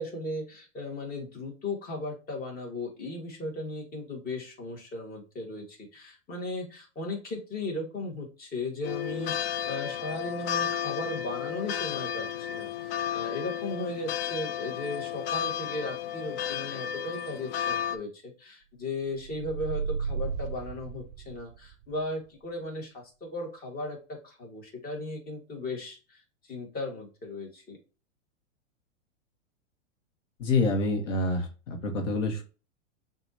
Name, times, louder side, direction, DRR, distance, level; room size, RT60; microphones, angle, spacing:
voice 1, 0.0-26.2 26.5-27.8, left 2 dB, 25° left, 0 dB, 1.6 m, -36 dB
sound 1, 8.8-18.0, left 10 dB, 50° left, 0.5 m, -33 dB
sound 2, 19.1-21.7, right 6 dB, 30° right, 0.3 m, -34 dB
voice 2, 30.4-32.4, left 2 dB, 70° left, 3 dB, 1.3 m, -27 dB
5.9 x 2.7 x 2.7 m, 0.33 s
hypercardioid pair, 120°, 38 cm